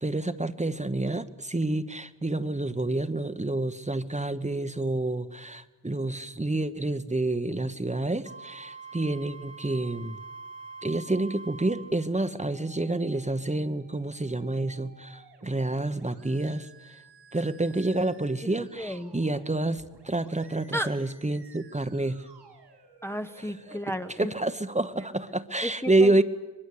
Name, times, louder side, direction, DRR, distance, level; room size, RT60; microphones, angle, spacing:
voice 1, 0.0-10.2 10.8-17.0 17.3-22.3 23.7-23.8 24.2-26.2, right 2 dB, 15° right, 10 dB, 1.1 m, -28 dB
Wind instrument woodwind instrument, 8.2-12.0, right 4 dB, 35° left, 1.6 m, -44 dB
sound 1, 11.3-24.3, right 4 dB, 80° right, 5.2 m, -56 dB
voice 2, 18.8-19.1 20.7-20.9 23.0-24.3 25.6-26.2, equal, 5° left, 7 dB, 1.0 m, -33 dB
22.5 x 21.5 x 8.5 m, 1.1 s
cardioid pair, 60°, 41 cm